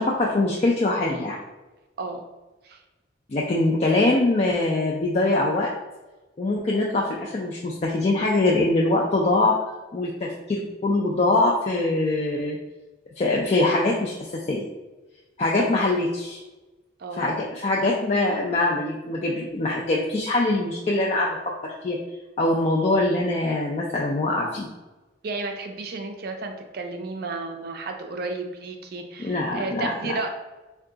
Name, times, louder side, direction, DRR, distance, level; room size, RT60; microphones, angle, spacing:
voice 1, 0.0-1.4 3.3-5.7 6.4-9.6 9.9-12.6 13.2-14.7 15.4-16.4 17.2-21.4 21.6-22.0 22.4-24.7 29.2-30.1, left 2 dB, 35° left, -2 dB, 0.3 m, -23 dB
voice 2, 25.2-30.3, right 3 dB, 50° right, 5 dB, 0.4 m, -32 dB
3.5 x 2.3 x 3.7 m, 1.1 s
head